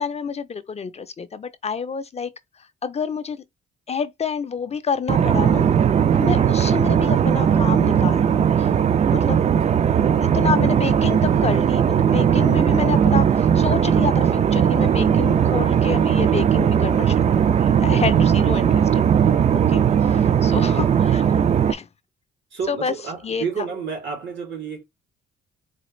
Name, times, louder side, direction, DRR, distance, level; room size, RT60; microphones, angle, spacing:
voice 1, 0.0-2.3 2.6-3.4 3.9-5.7 6.2-8.7 9.1-9.4 10.3-21.2 21.7-21.9 22.7-22.9 23.2-23.6, left 6 dB, 35° left, 0.5 m, -29 dB
sound 1, 5.1-21.7, right 8 dB, 35° right, 0.4 m, -18 dB
voice 2, 6.3-6.6 9.7-9.8 12.5-12.8 20.5-20.8 22.5-24.8, right 6 dB, 70° right, 2.7 m, -32 dB
4.0 x 2.4 x 3.1 m
cardioid pair, 90°, 20 cm